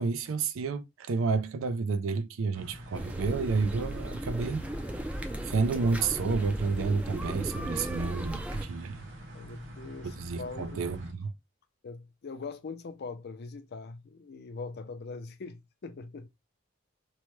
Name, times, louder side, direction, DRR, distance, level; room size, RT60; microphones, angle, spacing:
voice 1, 0.0-4.7 5.4-9.0 10.0-11.3, right 4 dB, 85° right, 0.4 m, -30 dB
sound 1, 2.5-11.1, right 1 dB, 70° right, 0.8 m, -46 dB
sound 2, 2.9-8.6, right 1 dB, 5° right, 0.4 m, -36 dB
voice 2, 9.3-10.8 11.8-16.3, left 4 dB, 55° left, 0.5 m, -42 dB
3.0 x 2.1 x 3.1 m
head